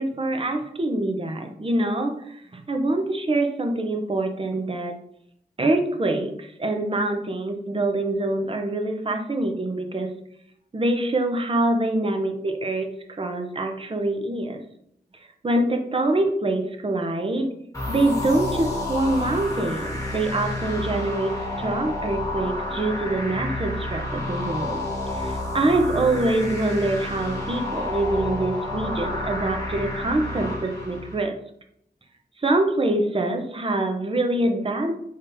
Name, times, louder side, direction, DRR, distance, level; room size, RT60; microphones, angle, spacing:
voice 1, 0.0-5.0 5.6-10.1 10.7-14.6 15.4-17.6 17.9-24.8 25.1-31.3 32.4-35.0, right 2 dB, 30° right, 4 dB, 0.6 m, -25 dB
sound 1, 17.7-31.2, left 1 dB, 20° left, 1.3 m, -30 dB
3.8 x 3.3 x 2.6 m, 0.71 s
wide cardioid pair, 65°, 17 cm